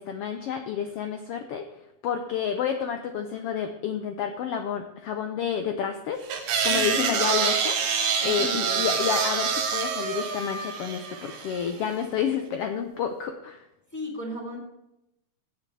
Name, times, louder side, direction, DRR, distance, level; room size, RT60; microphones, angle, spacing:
voice 1, 0.0-1.7 2.0-6.2 6.6-7.8 8.2-13.6, left 8 dB, 75° left, 6 dB, 1.4 m, -30 dB
sound 1, 6.3-11.7, right 6 dB, 85° right, 2.7 m, -26 dB
voice 2, 6.7-7.2 8.2-9.0 13.9-14.6, equal, 5° left, -4 dB, 2.6 m, -35 dB
16.0 x 8.7 x 3.3 m, 0.86 s
omnidirectional pair, 3.4 m